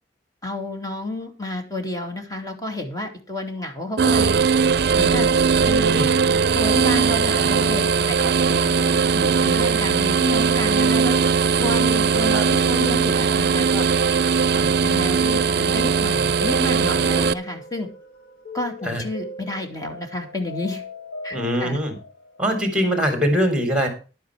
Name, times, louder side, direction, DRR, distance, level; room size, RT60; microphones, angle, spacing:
voice 1, 0.4-4.3 5.0-5.3 5.6-6.0 6.5-11.2 11.6-13.9 14.5-17.9 18.5-20.8 21.2-21.8, left 2 dB, 20° left, 4 dB, 2.4 m, -30 dB
sound 1, 4.0-17.3, right 5 dB, 65° right, 0.5 m, -19 dB
sound 2, 4.1-22.7, left 2 dB, 75° left, 3.6 m, -40 dB
voice 2, 21.3-22.0 22.4-23.9, equal, 5° right, 5 dB, 3.6 m, -22 dB
11.0 x 9.2 x 4.8 m, 0.34 s
head